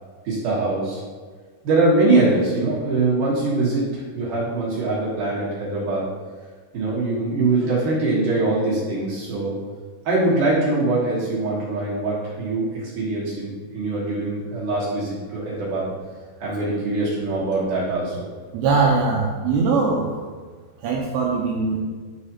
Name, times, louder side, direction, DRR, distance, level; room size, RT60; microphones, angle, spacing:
voice 1, 0.2-1.0 1.6-6.1 6.7-9.5 10.0-15.9 16.4-18.2, right 2 dB, 65° right, -8 dB, 2.1 m, -22 dB
voice 2, 18.5-20.1 20.8-21.8, right 4 dB, 90° right, -3 dB, 2.4 m, -21 dB
10.5 x 4.9 x 2.9 m, 1.5 s
omnidirectional pair, 5.6 m